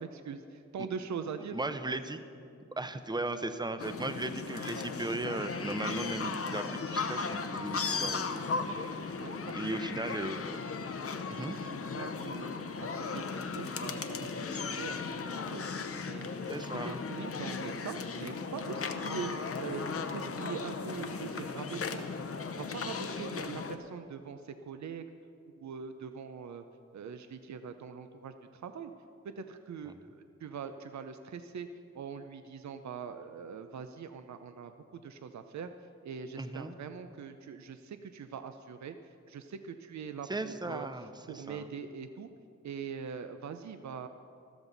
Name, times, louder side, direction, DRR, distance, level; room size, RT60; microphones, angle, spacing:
voice 1, 0.0-2.0 9.2-9.6 11.5-12.5 12.9-16.3 16.7-22.0 22.5-25.1 25.6-26.6 26.9-28.9 29.2-31.7 31.9-35.7 36.0-40.9 41.3-42.3 42.6-44.1, right 6 dB, 75° right, 9 dB, 0.6 m, -42 dB
voice 2, 1.5-2.2 2.8-8.5 8.8-9.2 9.5-10.6 11.3-11.6 16.5-17.0 36.4-36.7 40.3-41.7, right 2 dB, 15° right, 10 dB, 0.7 m, -37 dB
sound 1, 3.8-23.8, left 4 dB, 50° left, 0.8 m, -36 dB
14.0 x 13.0 x 4.0 m, 2.5 s
wide cardioid pair, 90°, 29 cm